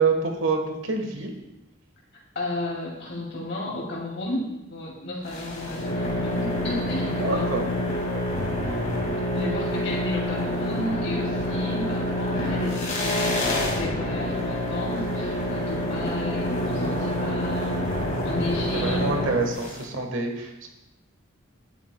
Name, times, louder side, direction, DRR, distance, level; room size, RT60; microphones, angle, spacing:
voice 1, 0.0-1.3 7.2-7.6 8.3-8.4 18.8-20.7, right 4 dB, 65° right, 3 dB, 1.3 m, -26 dB
voice 2, 2.3-7.5 9.3-17.7 18.2-19.0, left 1 dB, 55° left, -3 dB, 2.3 m, -32 dB
sound 1, 5.2-19.8, left 1 dB, 40° left, 2.1 m, -27 dB
10.5 x 9.4 x 2.2 m, 0.94 s
head